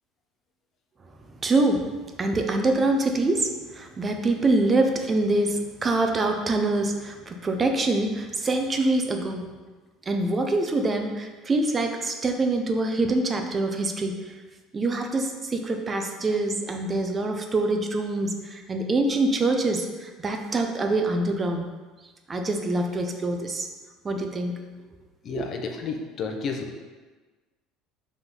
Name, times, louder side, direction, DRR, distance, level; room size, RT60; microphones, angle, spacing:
voice 1, 1.4-9.5 10.1-14.3 14.7-21.7 22.3-23.7 24.0-24.6 25.3-25.5, right 2 dB, 25° right, 4 dB, 0.8 m, -25 dB
voice 2, 25.2-26.8, left 5 dB, 45° left, 4 dB, 0.8 m, -32 dB
5.8 x 3.7 x 5.6 m, 1.3 s
cardioid pair, 120°, 0 cm